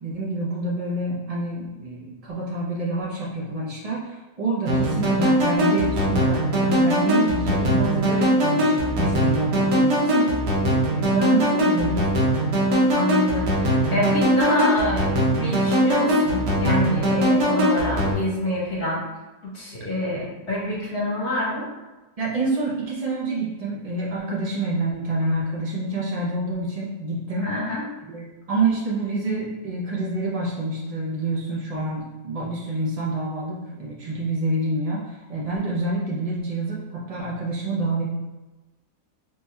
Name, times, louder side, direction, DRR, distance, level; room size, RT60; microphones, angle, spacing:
voice 1, 0.0-10.3 10.9-12.2 22.2-27.5 28.1-38.0, right 2 dB, 80° right, -5 dB, 0.3 m, -27 dB
sound 1, 4.7-18.1, equal, 60° right, 1.2 m, -21 dB
voice 2, 12.9-19.0 19.5-21.7 27.4-27.9, left 1 dB, 60° left, -5 dB, 1.7 m, -26 dB
4.1 x 3.3 x 2.3 m, 1.1 s
omnidirectional pair, 1.9 m